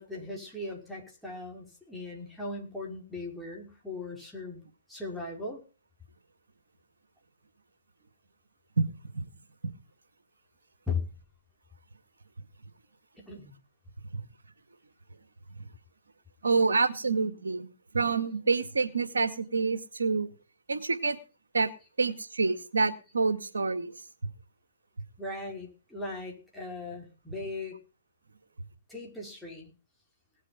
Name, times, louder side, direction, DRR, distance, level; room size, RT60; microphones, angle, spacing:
voice 1, 0.0-4.6 4.9-5.6 10.9-11.1 13.2-13.6 25.2-27.8 28.9-29.7, left 3 dB, ahead, -4 dB, 5.7 m, -38 dB
voice 2, 16.4-17.7 17.9-20.3 20.7-21.2 21.5-21.7 22.0-23.9, right 4 dB, 85° right, 8 dB, 2.2 m, -27 dB
18.5 x 8.1 x 6.1 m, 0.35 s
hypercardioid pair, 130°, 0 cm